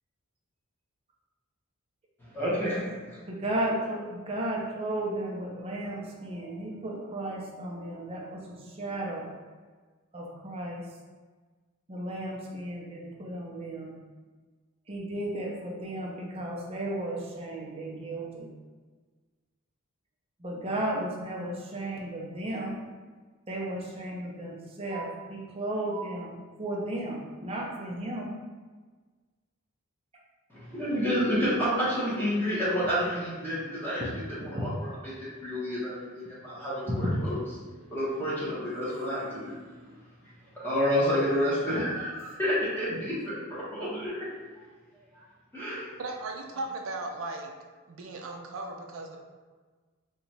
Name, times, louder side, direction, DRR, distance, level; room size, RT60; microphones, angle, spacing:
voice 1, 2.2-3.2 30.5-35.1 35.4-37.4 37.9-39.5 40.5-44.2 45.1-45.2 45.5-45.9, equal, 10° left, -10 dB, 0.9 m, -29 dB
voice 2, 3.3-9.3 10.1-10.8 11.9-13.9 14.9-18.5 20.4-22.8 23.5-28.3 34.0-34.6 36.9-37.2, right 1 dB, 30° right, -2 dB, 0.5 m, -34 dB
voice 3, 46.0-47.5 47.9-49.2, right 2 dB, 75° right, 2 dB, 0.5 m, -37 dB
2.9 x 2.3 x 4.0 m, 1.4 s
head